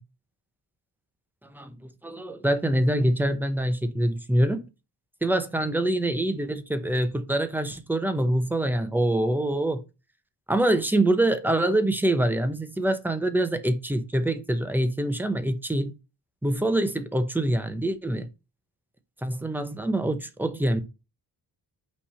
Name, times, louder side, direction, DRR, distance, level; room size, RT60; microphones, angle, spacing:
voice 1, 2.0-4.6 5.2-9.8 10.5-15.9 16.4-18.3 19.2-20.8, right 1 dB, 5° right, 0.8 m, -25 dB
5.8 x 3.3 x 5.6 m
wide cardioid pair, 140°, 42 cm